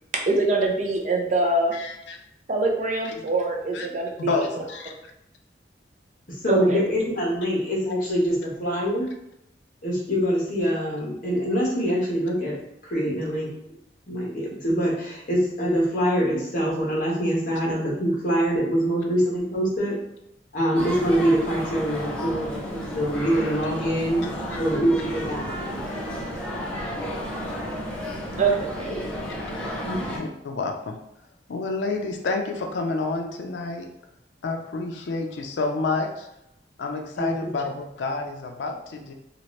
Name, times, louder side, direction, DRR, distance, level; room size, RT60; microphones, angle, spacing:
voice 1, 0.1-1.7 2.5-4.5 6.5-6.8 28.4-28.9, right 3 dB, 45° right, 1 dB, 0.5 m, -24 dB
voice 2, 1.7-2.2 3.7-3.9 4.2-4.9 24.2-24.6 30.1-31.0 31.5-33.9 34.4-36.3 36.8-39.1, left 3 dB, 85° left, 3 dB, 0.4 m, -29 dB
voice 3, 6.4-9.1 9.8-12.6 12.8-13.5 14.1-20.0 20.5-24.3 24.6-25.8 29.8-30.0 37.2-37.6, equal, 50° left, -4 dB, 1.0 m, -24 dB
sound 1, 20.7-30.2, equal, 5° left, 0.7 m, -32 dB
2.9 x 2.4 x 3.1 m, 0.82 s
head